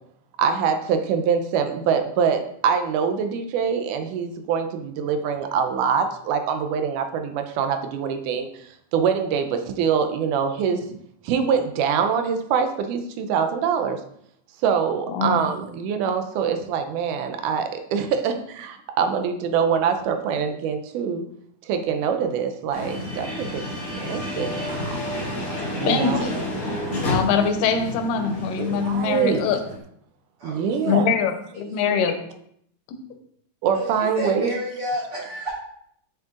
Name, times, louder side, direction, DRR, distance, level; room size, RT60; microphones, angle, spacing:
voice 1, 0.4-11.0 11.2-14.0 14.6-21.2 21.7-23.6 24.0-25.0 25.7-26.3 28.6-29.5 30.4-31.1 33.6-34.5, right 7 dB, 80° right, 7 dB, 2.1 m, -24 dB
voice 2, 15.1-15.5 25.8-29.6 30.8-32.2 32.9-33.0, left 6 dB, 85° left, 6 dB, 2.4 m, -23 dB
sound 1, 22.7-29.8, left 1 dB, 45° left, 2.6 m, -30 dB
voice 3, 30.4-30.9 31.8-32.1 33.7-35.5, equal, 40° right, -6 dB, 3.4 m, -31 dB
7.1 x 6.5 x 2.4 m, 0.69 s
omnidirectional pair, 3.8 m